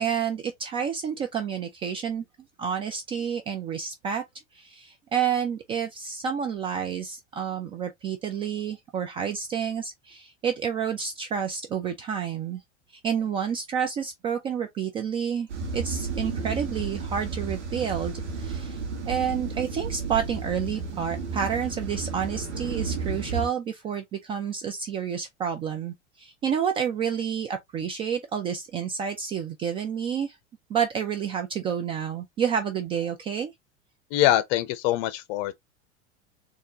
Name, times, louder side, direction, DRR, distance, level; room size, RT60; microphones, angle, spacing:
voice 1, 0.0-2.2 2.6-4.2 4.5-12.6 13.0-15.5 15.7-18.8 19.0-30.4 30.7-33.5, right 7 dB, 15° right, 0.3 m, -29 dB
sound 1, 15.5-23.5, right 4 dB, 70° right, 1.5 m, -32 dB
voice 2, 34.1-35.6, left 13 dB, 40° left, 0.7 m, -23 dB
4.2 x 3.0 x 2.8 m
figure-of-eight pair, 85°, 36 cm